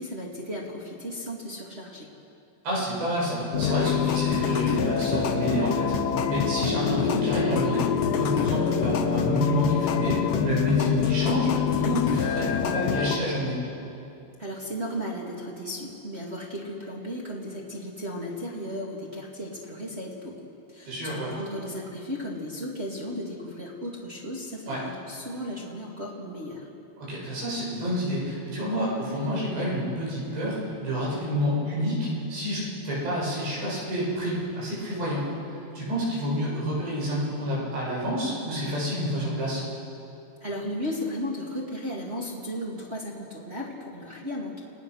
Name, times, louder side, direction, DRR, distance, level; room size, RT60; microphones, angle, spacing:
voice 1, 0.0-2.1 14.4-20.3 20.7-26.7 40.4-44.6, equal, 25° right, -4 dB, 1.6 m, -35 dB
voice 2, 2.6-7.9 8.2-13.6 20.9-21.3 24.7-24.8 27.0-39.6, equal, 90° right, -5 dB, 9.2 m, -28 dB
sound 1, 3.5-13.2, left 8 dB, 70° left, 2.2 m, -25 dB
29.5 x 19.0 x 6.4 m, 2.7 s
omnidirectional pair, 4.8 m